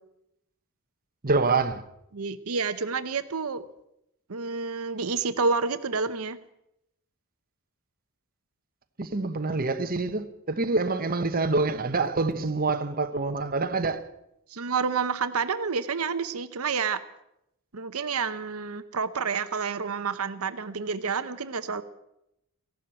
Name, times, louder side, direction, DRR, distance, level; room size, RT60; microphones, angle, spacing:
voice 1, 1.2-1.8 9.0-14.0, right 3 dB, 40° right, 1.1 m, -26 dB
voice 2, 2.1-3.6 4.3-6.4 14.5-17.0 17.7-21.8, right 5 dB, 70° right, 0.8 m, -29 dB
16.0 x 12.0 x 7.7 m
head